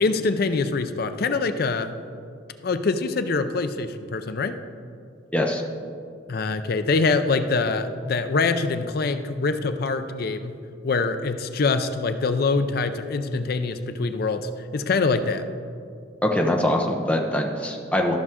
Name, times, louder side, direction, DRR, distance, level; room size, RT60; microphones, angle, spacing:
voice 1, 0.0-2.0 2.6-4.6 6.3-10.5 10.8-15.4, left 4 dB, 55° left, 10 dB, 0.5 m, -24 dB
voice 2, 16.2-18.1, left 1 dB, 5° left, 1 dB, 0.7 m, -23 dB
13.5 x 6.0 x 3.7 m, 2.3 s
head